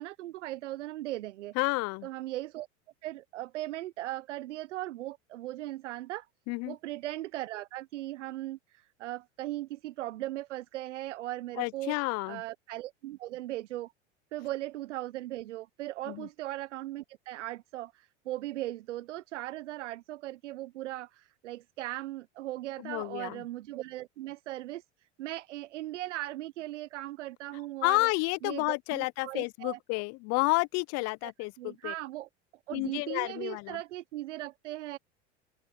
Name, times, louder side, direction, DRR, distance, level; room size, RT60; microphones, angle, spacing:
voice 1, 0.0-1.5 2.0-2.7 3.0-6.3 6.7-11.9 12.3-13.9 14.3-24.8 25.2-28.1 28.4-29.8 31.2-31.3 31.6-32.3 32.7-35.0, right 15 dB, 80° right, 0.8 m, -38 dB
voice 2, 1.6-2.1 6.5-6.8 11.6-12.4 16.1-16.3 22.8-23.4 27.8-31.9 32.7-33.8, left 27 dB, 45° left, 0.6 m, -30 dB
open air
hypercardioid pair, 90°, 35 cm